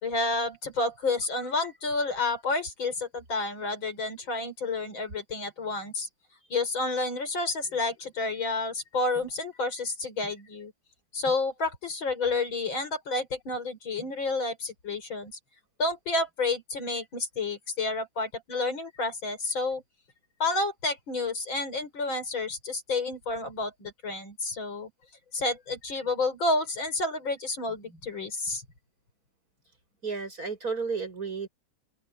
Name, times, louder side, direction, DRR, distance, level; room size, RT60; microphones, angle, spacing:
voice 1, 0.0-6.1 6.5-10.7 11.1-15.3 15.8-19.8 20.4-24.9 25.3-28.6, left 3 dB, 75° left, 5.6 m, -30 dB
voice 2, 30.0-31.5, right 5 dB, 45° right, 6.3 m, -32 dB
open air
omnidirectional pair, 2.2 m